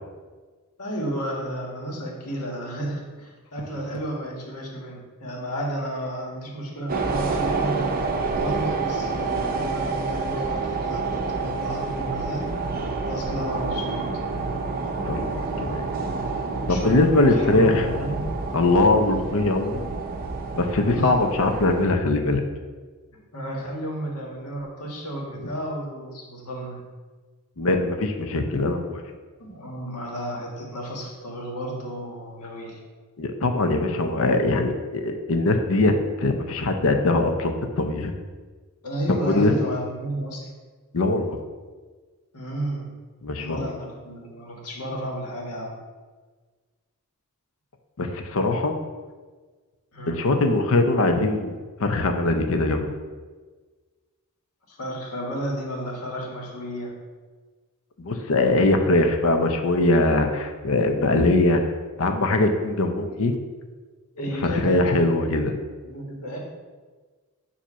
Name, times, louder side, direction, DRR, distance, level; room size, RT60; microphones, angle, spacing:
voice 1, 0.8-14.0 16.7-18.2 20.9-21.2 23.3-26.8 29.4-32.8 38.8-40.4 42.3-42.9 43.4-45.8 49.9-50.3 54.7-57.0 64.2-65.3 65.8-66.4, equal, 90° left, -1 dB, 1.5 m, -32 dB
sound 1, 6.9-21.9, right 4 dB, 40° right, 0.6 m, -28 dB
voice 2, 15.1-15.9 16.7-17.9 18.5-19.9 20.5-22.4 27.6-29.0 33.2-38.1 39.1-39.5 40.9-41.4 43.2-43.7 48.0-48.8 50.1-52.9 58.0-61.6 62.0-63.3 64.2-65.5, left 2 dB, 65° left, 5 dB, 0.7 m, -22 dB
7.5 x 2.8 x 5.5 m, 1.4 s
head